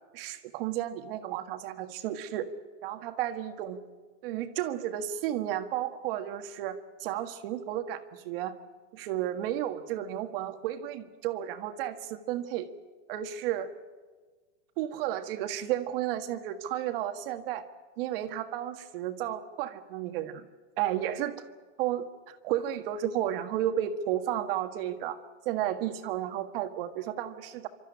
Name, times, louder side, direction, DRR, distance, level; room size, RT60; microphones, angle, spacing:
voice 1, 0.1-2.5 2.8-3.8 4.2-8.6 8.9-12.7 13.1-13.7 14.8-17.6 18.0-20.5 20.8-21.4 21.8-25.2 25.5-27.7, right 11 dB, 50° right, 8 dB, 1.7 m, -32 dB
28.5 x 13.5 x 9.8 m, 1.4 s
supercardioid pair, 150°, 36 cm